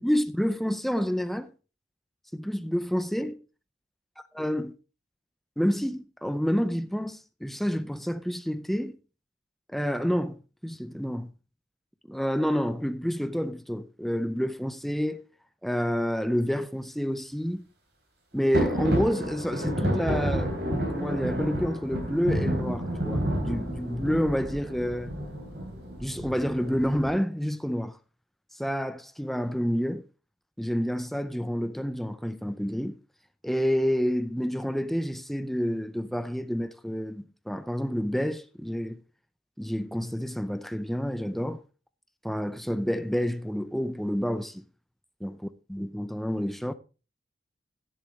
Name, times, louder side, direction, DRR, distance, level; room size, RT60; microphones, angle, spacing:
voice 1, 0.0-1.5 2.3-3.4 4.3-4.7 5.6-9.0 9.7-11.3 12.1-15.2 15.6-17.6 18.3-20.5 20.9-25.2 26.0-28.0 28.5-30.0 30.6-33.0 33.4-39.0 39.6-41.6 42.2-44.6 45.2-46.7, equal, ahead, 0.5 m, -29 dB
sound 1, 18.5-27.1, equal, 65° right, 3.8 m, -30 dB
12.0 x 10.0 x 3.1 m
head